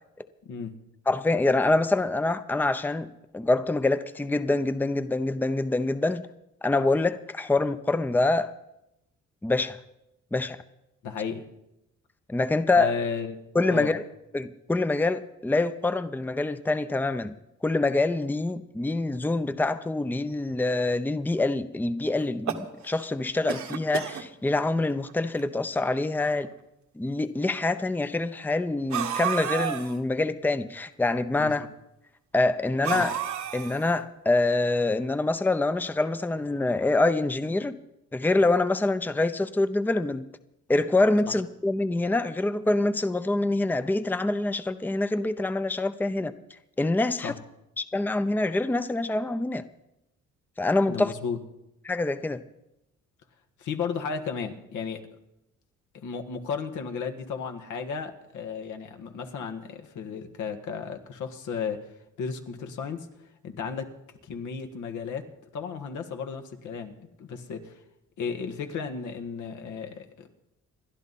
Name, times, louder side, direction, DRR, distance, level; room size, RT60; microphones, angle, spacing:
voice 1, 0.4-0.8 11.0-11.4 12.7-13.4 13.7-13.9 31.4-31.6 32.9-33.0 41.2-41.4 47.2-47.4 50.9-51.4 53.6-55.0 55.9-61.9 62.2-63.1 63.4-63.9 64.2-67.8 68.2-70.3, left 6 dB, 80° left, 1.7 m, -34 dB
voice 2, 1.1-3.1 3.3-6.2 6.6-8.5 9.4-9.8 10.3-10.6 12.3-12.9 13.5-14.0 14.3-17.3 17.6-26.5 27.0-31.7 32.3-33.2 33.5-37.8 38.1-40.3 40.7-46.3 46.8-47.3 47.8-49.6 50.6-51.1 51.8-52.4, left 2 dB, 5° left, 0.6 m, -25 dB
sound 1, 22.2-23.1 23.5-24.2 25.1-25.2 25.4-25.5 26.4-26.5 28.9-30.0 32.8-34.0, right 9 dB, 70° right, 1.5 m, -31 dB
28.5 x 11.0 x 4.2 m
cardioid pair, 90°, 30 cm